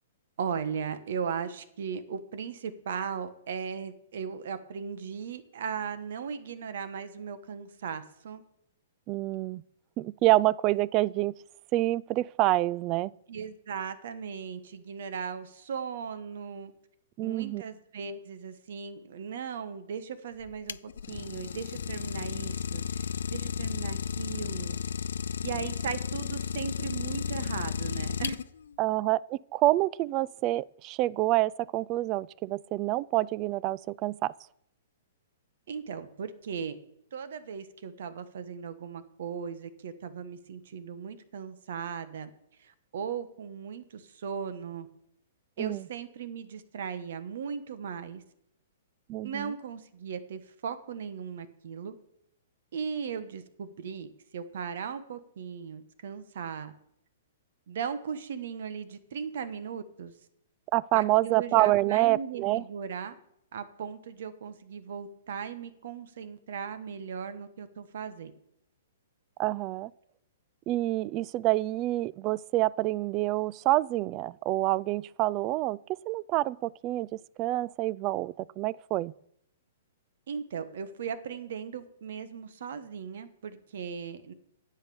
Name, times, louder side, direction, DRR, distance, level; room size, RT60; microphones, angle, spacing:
voice 1, 0.4-8.4 13.3-16.7 17.2-20.8 21.1-24.8 25.4-28.4 35.7-36.8 37.1-42.3 42.6-44.9 45.6-48.2 49.2-52.0 52.7-56.7 57.7-60.1 60.9-63.1 63.5-68.3 80.3-84.3, right 6 dB, 65° right, 1.3 m, -37 dB
voice 2, 9.1-9.6 10.0-11.3 11.7-13.1 17.2-17.6 28.8-34.3 45.6-45.8 49.1-49.5 60.7-62.6 69.4-69.9 70.7-75.8 76.1-77.1 77.4-79.1, right 17 dB, 35° right, 0.4 m, -27 dB
Idling, 20.4-28.7, left 7 dB, 75° left, 0.4 m, -33 dB
10.5 x 8.3 x 7.0 m
hypercardioid pair, 125°, 0 cm